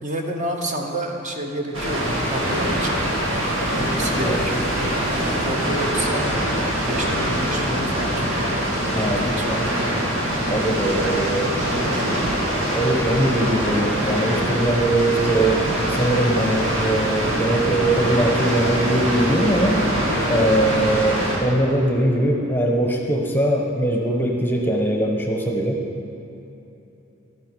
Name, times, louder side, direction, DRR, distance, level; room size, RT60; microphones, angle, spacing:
voice 1, 0.0-3.1 3.7-4.6 5.4-6.3 6.9-10.1 11.7-12.3, right 1 dB, 40° right, 2 dB, 0.9 m, -30 dB
Water, 1.7-21.4, equal, 80° right, 2.0 m, -23 dB
voice 2, 4.1-4.4 8.9-9.6 10.5-11.6 12.7-19.8 20.3-25.8, right 1 dB, 10° left, 1 dB, 0.9 m, -21 dB
11.5 x 9.1 x 4.7 m, 3.0 s
head